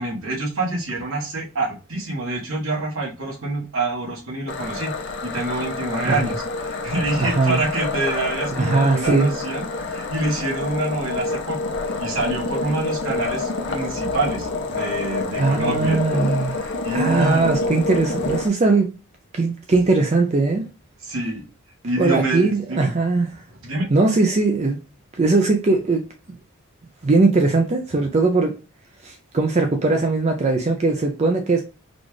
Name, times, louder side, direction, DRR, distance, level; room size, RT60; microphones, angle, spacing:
voice 1, 0.0-4.9 5.2-17.6 21.0-21.4 21.8-22.9 23.6-23.9, right 2 dB, 65° right, 1.4 m, -27 dB
sound 1, 4.5-18.5, left 3 dB, 50° left, 0.6 m, -27 dB
voice 2, 7.2-7.6 8.5-9.3 15.4-16.6 16.9-18.9 19.3-20.6 22.0-23.3 23.9-24.8 25.1-26.0 27.0-28.5 29.0-31.6, right 3 dB, 30° right, 0.4 m, -19 dB
4.0 x 2.4 x 3.1 m
head